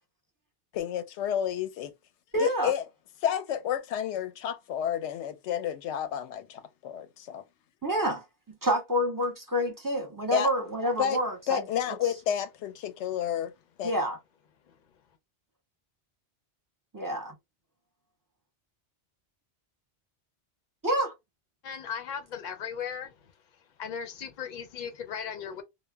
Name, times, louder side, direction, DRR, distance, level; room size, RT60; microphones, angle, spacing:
voice 1, 0.7-1.9 2.4-2.8 3.2-7.4 10.3-10.5 11.0-11.2 11.5-13.5 13.8-13.9, left 9 dB, 90° left, 0.9 m, -30 dB
voice 2, 2.3-2.7 7.8-11.6 13.8-14.2 16.9-17.3 20.8-21.1, equal, 25° right, 0.5 m, -28 dB
voice 3, 21.6-23.1 23.8-25.6, left 7 dB, 50° left, 0.6 m, -37 dB
2.1 x 2.1 x 3.2 m
omnidirectional pair, 1.1 m